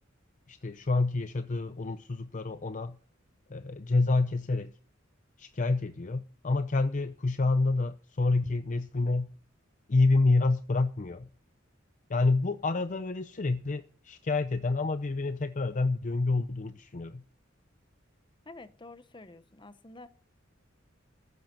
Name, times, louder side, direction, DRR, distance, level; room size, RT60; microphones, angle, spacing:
voice 1, 0.5-3.0 3.5-4.7 5.4-9.3 9.9-11.3 12.1-17.2, left 3 dB, 40° left, 0.6 m, -28 dB
voice 2, 18.4-20.1, left 2 dB, 25° left, 1.0 m, -49 dB
14.5 x 10.5 x 6.1 m
head